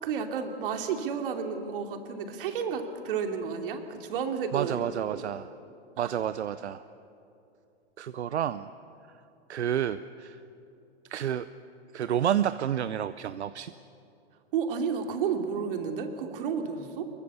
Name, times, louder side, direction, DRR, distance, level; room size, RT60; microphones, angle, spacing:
voice 1, 0.0-4.8 5.1-5.2 6.0-6.1 14.5-17.1, right 6 dB, 50° right, 5 dB, 2.8 m, -31 dB
voice 2, 4.5-5.5 6.0-6.8 8.0-8.7 9.5-10.4 11.1-11.5 11.9-13.7, right 10 dB, 75° right, 13 dB, 0.8 m, -30 dB
23.5 x 22.5 x 7.0 m, 2.7 s
hypercardioid pair, 125°, 34 cm